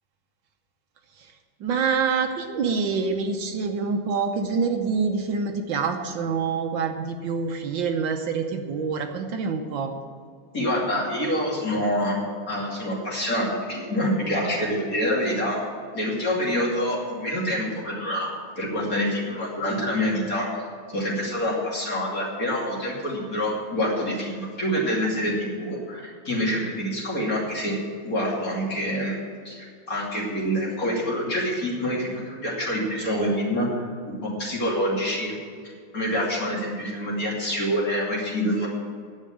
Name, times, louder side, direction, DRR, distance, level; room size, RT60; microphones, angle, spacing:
voice 1, 1.6-9.9, right 5 dB, 70° right, 5 dB, 1.5 m, -26 dB
voice 2, 10.5-12.2 12.5-15.6 15.9-18.3 18.6-20.5 20.9-27.8 28.0-29.1 29.4-33.9 34.2-35.4 35.9-38.7, equal, 40° left, -4 dB, 3.1 m, -26 dB
10.5 x 7.5 x 8.5 m, 2.1 s
omnidirectional pair, 2.3 m